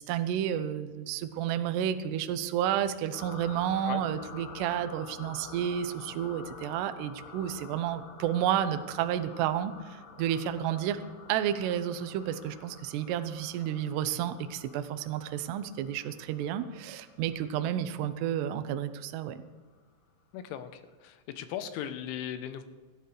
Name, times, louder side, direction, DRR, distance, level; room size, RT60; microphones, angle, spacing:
voice 1, 0.0-11.0 11.3-19.4, right 10 dB, 80° right, 9 dB, 2.7 m, -31 dB
sound 1, 3.1-19.4, left 4 dB, 60° left, 2.8 m, -49 dB
voice 2, 20.3-22.6, left 10 dB, 85° left, 9 dB, 3.3 m, -38 dB
25.0 x 12.5 x 3.3 m, 1.3 s
omnidirectional pair, 5.4 m